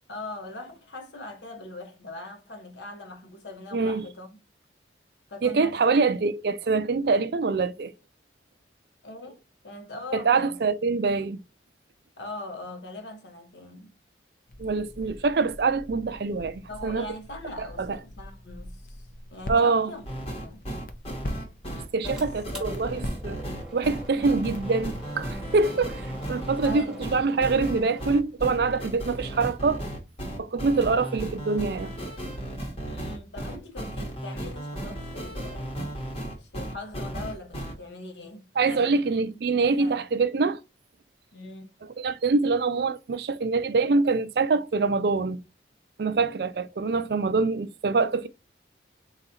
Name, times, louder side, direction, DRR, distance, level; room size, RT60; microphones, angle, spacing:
voice 1, 0.1-4.4 5.3-6.0 9.0-11.0 12.2-13.9 16.7-20.6 22.0-22.9 24.1-24.7 26.6-27.1 32.9-35.7 36.4-39.0 39.3-40.0 41.3-41.7, left 2 dB, 80° left, 1.0 m, -41 dB
voice 2, 3.7-4.0 5.4-7.9 10.1-11.4 14.6-17.1 17.6-18.0 19.5-19.9 21.9-23.4 23.7-26.0 26.3-29.8 30.4-31.9 38.6-40.6 42.0-45.4 46.0-48.3, right 4 dB, 60° right, 0.4 m, -25 dB
Crackle, 14.5-25.3, left 1 dB, 50° left, 0.6 m, -42 dB
sound 1, 20.1-37.7, right 1 dB, 30° left, 1.0 m, -35 dB
sound 2, 22.2-28.1, right 1 dB, 5° right, 1.0 m, -44 dB
3.9 x 2.3 x 4.2 m
head